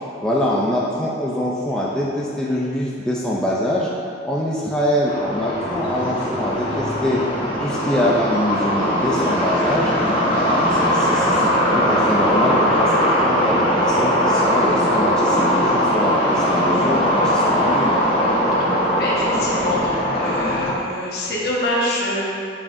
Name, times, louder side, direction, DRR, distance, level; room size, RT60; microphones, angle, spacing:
voice 1, 0.2-3.9 4.2-7.2 7.6-9.9 10.5-18.0, left 1 dB, 5° left, -6 dB, 0.5 m, -24 dB
sound 1, 5.0-20.7, equal, 30° left, 1.1 m, -20 dB
voice 2, 18.9-22.3, left 1 dB, 55° left, -6 dB, 1.5 m, -25 dB
9.0 x 5.7 x 2.7 m, 2.4 s
head